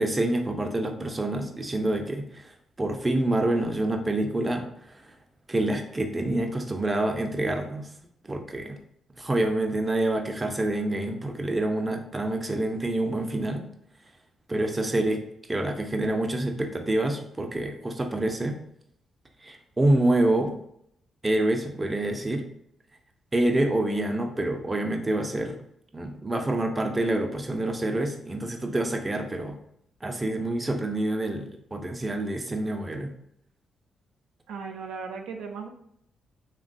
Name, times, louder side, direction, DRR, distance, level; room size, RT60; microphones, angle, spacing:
voice 1, 0.0-4.7 4.9-5.1 5.5-7.9 8.2-8.8 9.2-13.6 14.5-15.2 15.5-18.5 19.4-20.5 21.2-22.4 23.3-25.6 25.9-29.6 30.0-33.1, right 1 dB, 25° right, 4 dB, 0.5 m, -27 dB
voice 2, 34.5-35.7, right 5 dB, 85° right, 2 dB, 0.3 m, -36 dB
3.1 x 2.2 x 2.6 m, 0.71 s
supercardioid pair, 60°, 0 cm